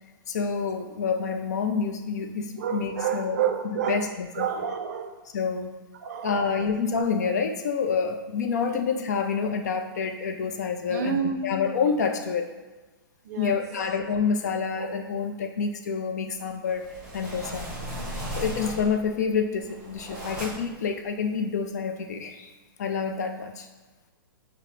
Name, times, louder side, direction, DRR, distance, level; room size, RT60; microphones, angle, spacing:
voice 1, 0.3-3.4 3.9-4.5 5.3-5.7 6.2-12.5 13.4-16.8 17.1-17.7 18.4-22.5 22.8-23.7, left 5 dB, 45° left, 5 dB, 0.4 m, -28 dB
voice 2, 2.6-4.1 4.3-5.2 6.0-6.7 7.2-7.3 10.9-11.6 13.2-13.9 14.8-15.0 17.4-17.6, right 8 dB, 45° right, 6 dB, 0.4 m, -30 dB
sound 1, 16.6-19.1 19.6-20.8, right 1 dB, 5° right, 0.7 m, -36 dB
5.6 x 2.0 x 3.2 m, 1.3 s
hypercardioid pair, 170°, 12 cm